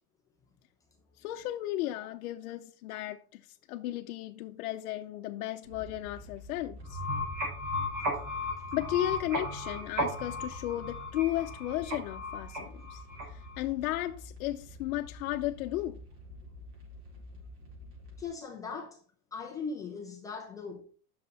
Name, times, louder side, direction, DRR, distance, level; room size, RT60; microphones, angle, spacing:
voice 1, 1.2-7.0 8.7-16.0, left 14 dB, 65° left, 0.7 m, -35 dB
sound 1, 5.6-18.3, left 2 dB, 90° right, 4.5 m, -49 dB
sound 2, 6.8-13.6, left 1 dB, 60° right, 5.6 m, -35 dB
voice 2, 18.2-19.0 19.3-20.8, left 5 dB, 10° left, 0.3 m, -39 dB
9.5 x 6.6 x 4.1 m
supercardioid pair, 160°, 46 cm